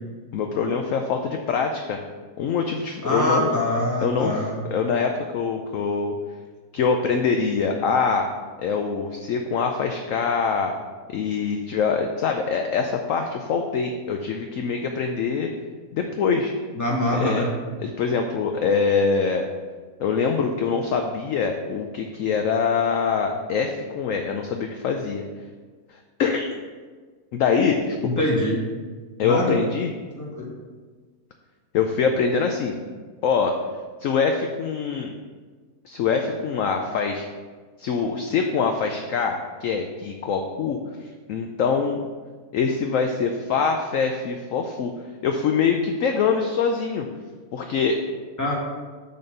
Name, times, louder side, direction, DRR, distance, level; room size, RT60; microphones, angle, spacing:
voice 1, 0.3-2.0 2.4-3.5 4.0-4.4 4.7-6.2 6.7-8.3 8.6-10.7 11.1-15.5 15.9-16.5 17.1-17.5 17.8-19.5 20.0-25.3 25.9-26.5 27.3-28.1 29.2-29.9 31.7-32.8 33.2-33.6 34.0-35.1 35.8-37.3 37.8-42.0 42.5-47.1 47.5-48.0, left 5 dB, 65° left, 4 dB, 0.9 m, -24 dB
voice 2, 3.0-4.6 16.7-17.5 28.0-28.6 29.2-29.6 30.1-30.5 48.4-48.5, left 1 dB, 10° left, -3 dB, 1.5 m, -24 dB
6.8 x 4.2 x 6.6 m, 1.4 s
omnidirectional pair, 1.7 m